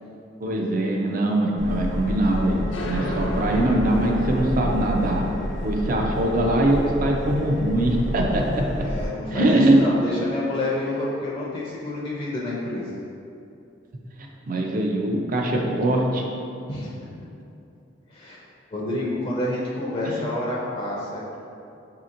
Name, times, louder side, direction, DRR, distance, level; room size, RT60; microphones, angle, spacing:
voice 1, 0.4-5.2 5.6-8.6 9.3-9.8 14.5-16.2 20.0-20.3, right 1 dB, 45° right, 1 dB, 0.4 m, -22 dB
Subway metro underground, 1.6-9.1, equal, 70° right, 1.2 m, -30 dB
sound 1, 2.7-10.0, left 1 dB, 85° left, 0.5 m, -35 dB
voice 2, 8.8-12.9 16.7-16.9 18.1-18.4 18.7-21.3, left 2 dB, 30° left, -5 dB, 0.5 m, -29 dB
5.7 x 2.8 x 2.5 m, 2.7 s
head